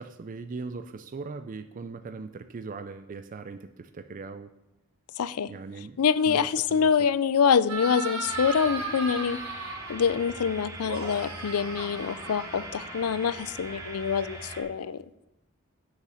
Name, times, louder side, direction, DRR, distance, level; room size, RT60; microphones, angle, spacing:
voice 1, 0.0-4.5 5.5-6.0 6.3-6.9, right 4 dB, 40° right, 10 dB, 0.4 m, -39 dB
voice 2, 5.2-5.5 6.0-9.4 9.9-15.0, left 6 dB, 85° left, 17 dB, 0.4 m, -25 dB
sound 1, 7.7-10.2 10.8-13.4, right 3 dB, 75° right, 1.9 m, -36 dB
sound 2, 8.2-14.6, right 1 dB, 15° right, 1.3 m, -42 dB
8.3 x 6.5 x 6.3 m, 0.92 s
head